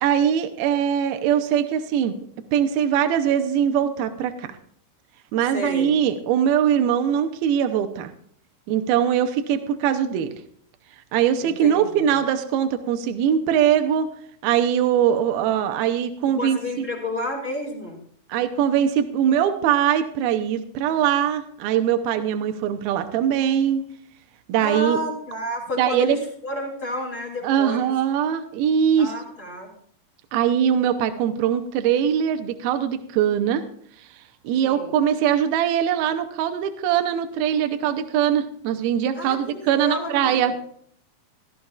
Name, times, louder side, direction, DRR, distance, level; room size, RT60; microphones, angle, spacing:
voice 1, 0.0-2.2 2.5-4.5 5.3-8.1 8.7-10.3 11.1-14.1 14.4-16.6 18.3-23.8 24.5-25.0 25.8-26.2 27.4-29.1 30.3-33.6 34.4-40.5, right 9 dB, 85° right, 8 dB, 2.6 m, -21 dB
voice 2, 5.5-6.0 11.4-12.2 16.3-18.0 24.6-27.9 29.0-29.7 34.6-35.0 39.1-40.6, left 1 dB, 20° left, -2 dB, 2.9 m, -31 dB
17.0 x 13.0 x 2.4 m, 0.64 s
omnidirectional pair, 4.3 m